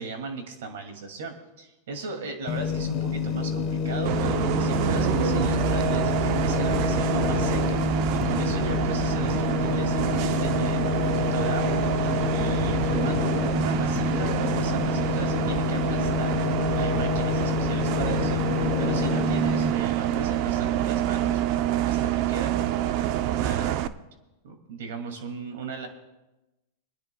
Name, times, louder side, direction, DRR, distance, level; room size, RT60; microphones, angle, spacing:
voice 1, 0.0-7.8 8.1-16.4 16.7-23.8 24.4-25.9, right 4 dB, 75° right, 5 dB, 2.4 m, -37 dB
sound 1, 2.5-19.7, left 6 dB, 40° left, 1.0 m, -27 dB
Bus, 4.0-23.9, right 12 dB, 55° right, 0.6 m, -27 dB
30.0 x 10.5 x 2.3 m, 1.0 s
hypercardioid pair, 115°, 0 cm